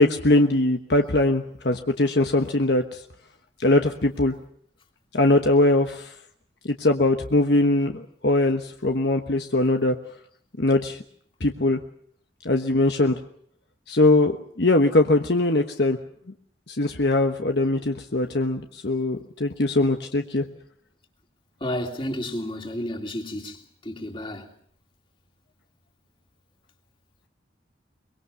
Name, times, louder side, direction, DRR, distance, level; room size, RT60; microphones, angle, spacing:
voice 1, 0.0-3.0 3.6-4.3 5.1-6.1 6.6-10.0 10.6-11.0 11.4-11.8 12.4-13.2 13.9-16.0 16.7-20.4, left 2 dB, 65° left, 1.2 m, -21 dB
voice 2, 21.6-23.6 23.8-24.4, left 1 dB, 30° left, 2.9 m, -31 dB
23.5 x 22.5 x 6.9 m
head